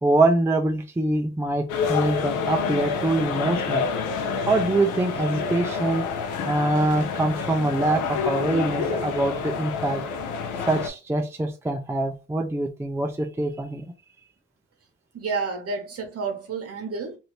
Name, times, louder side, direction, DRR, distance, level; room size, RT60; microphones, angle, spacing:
voice 1, 0.0-3.9 4.4-6.1 6.5-10.0 10.6-13.8, right 2 dB, 10° right, 0.5 m, -24 dB
sound 1, 1.7-10.9, left 5 dB, 90° left, 0.8 m, -28 dB
voice 2, 15.1-17.2, right 4 dB, 50° right, 1.2 m, -30 dB
2.7 x 2.6 x 3.2 m
cardioid pair, 90°, 30 cm